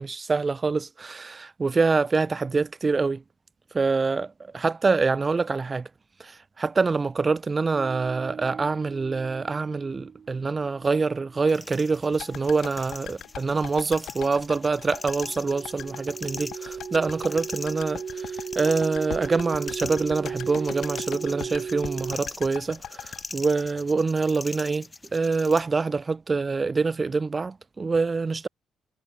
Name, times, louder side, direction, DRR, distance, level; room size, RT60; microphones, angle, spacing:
voice 1, 0.0-3.2 3.7-5.9 6.2-28.5, right 4 dB, 30° right, 0.4 m, -25 dB
sound 1, 7.6-11.8 14.9-22.1, right 6 dB, 50° right, 0.9 m, -37 dB
sound 2, 11.5-25.6, left 3 dB, 20° left, 2.6 m, -41 dB
sound 3, 12.2-24.4 24.6-24.7, left 10 dB, 70° left, 2.6 m, -41 dB
cardioid pair, 90°, 0 cm